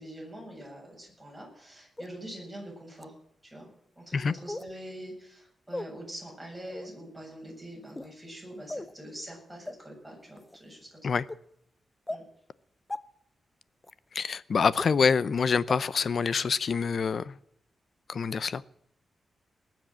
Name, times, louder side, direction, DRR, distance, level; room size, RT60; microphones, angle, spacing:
voice 1, 0.0-3.1 3.4-11.1 12.1-12.2, right 1 dB, 5° right, 7.9 m, -44 dB
sound 1, 2.0-2.1 3.0-3.1 4.5-4.7 5.7-5.9 6.7-6.9 7.8-8.1 8.7-8.9 9.7-9.8 10.4-10.6 11.3-11.4 12.1-12.2 12.9-13.0 13.8-13.9 14.8-14.9 15.7-15.8 16.3-16.4, left 2 dB, 15° left, 0.6 m, -37 dB
voice 2, 14.1-17.4 18.1-18.6, left 5 dB, 50° left, 0.6 m, -26 dB
20.0 x 7.6 x 7.6 m
wide cardioid pair, 120°, 0 cm